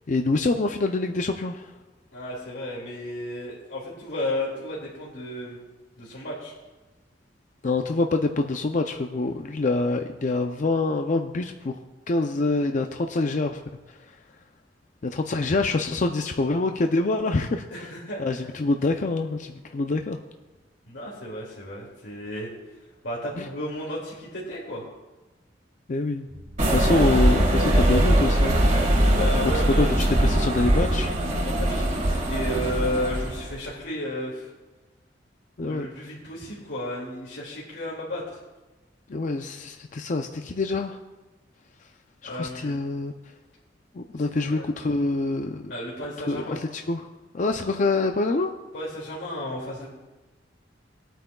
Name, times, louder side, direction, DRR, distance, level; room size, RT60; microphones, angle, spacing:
voice 1, 0.1-1.7 7.6-11.8 12.1-13.6 15.0-17.9 18.2-20.2 23.4-23.5 25.9-26.3 26.7-28.6 29.4-31.1 35.6-35.9 39.1-41.0 42.2-43.1 43.9-45.7 46.3-47.1 47.3-48.5, left 3 dB, 45° left, 5 dB, 0.5 m, -26 dB
voice 2, 2.1-5.6 6.0-6.5 17.7-18.6 20.9-22.5 23.0-24.8 29.1-29.9 31.4-34.5 35.6-38.4 42.2-42.8 44.4-44.7 45.7-46.6 48.7-49.9, left 1 dB, 80° left, -4 dB, 2.3 m, -33 dB
sound 1, 26.3-29.3, equal, 85° right, 2.4 m, -40 dB
sound 2, 26.6-33.5, right 1 dB, 40° right, 1.7 m, -21 dB
20.0 x 9.0 x 2.3 m, 1.2 s
head